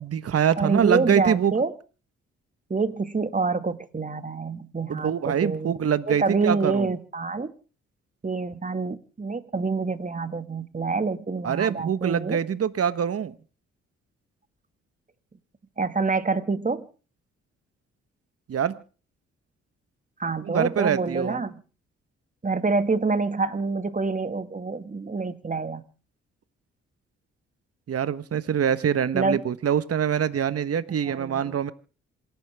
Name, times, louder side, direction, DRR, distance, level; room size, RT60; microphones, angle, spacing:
voice 1, 0.0-1.5 4.9-6.9 11.4-13.3 18.5-18.8 20.4-21.4 27.9-31.7, right 8 dB, 55° right, 14 dB, 1.3 m, -24 dB
voice 2, 0.6-1.7 2.7-5.8 6.1-7.5 8.2-12.4 15.8-16.8 20.2-21.6 22.4-25.8 29.1-29.4 31.0-31.6, right 4 dB, 25° right, 11 dB, 2.1 m, -27 dB
27.5 x 12.0 x 3.6 m, 0.38 s
supercardioid pair, 55°, 29 cm